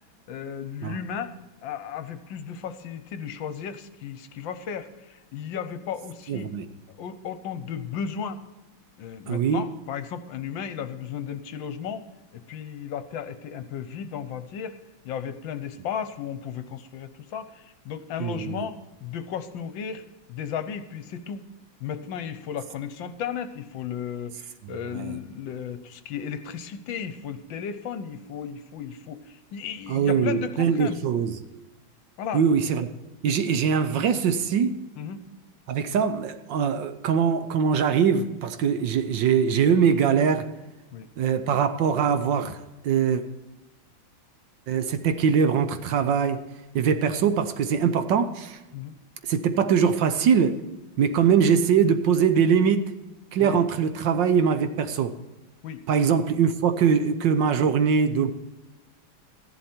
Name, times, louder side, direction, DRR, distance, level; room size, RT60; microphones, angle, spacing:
voice 1, 0.3-1.3 1.6-6.5 7.0-8.4 9.0-14.8 15.0-21.4 21.8-31.0 32.2-32.4 35.0-35.2 40.9-41.1 48.7-48.9 53.4-53.6 55.6-55.8, left 8 dB, 75° left, 11 dB, 1.5 m, -35 dB
voice 2, 6.3-6.7 9.3-9.7 18.2-18.6 24.9-25.1 29.9-31.4 32.3-32.9 33.2-34.8 35.7-40.5 41.2-42.6 42.8-43.2 44.7-46.4 46.7-48.6 49.2-50.6 51.0-52.9 53.3-55.1 55.9-58.3, right 7 dB, 70° right, 10 dB, 1.4 m, -22 dB
14.0 x 11.0 x 4.4 m, 1.1 s
omnidirectional pair, 2.2 m